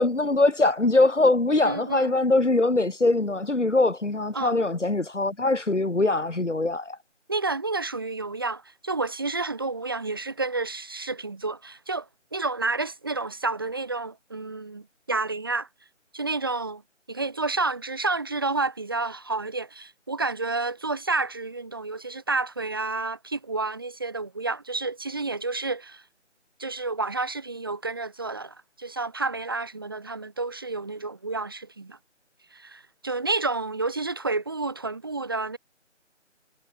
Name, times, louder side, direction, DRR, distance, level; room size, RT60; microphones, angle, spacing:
voice 1, 0.0-7.0, left 2 dB, 65° left, 3.9 m, -22 dB
voice 2, 1.6-2.1 4.3-4.5 7.3-15.7 16.1-16.8 17.1-26.0 26.6-32.0 32.5-35.6, right 3 dB, 20° right, 3.9 m, -30 dB
figure-of-eight pair, 175°, 38 cm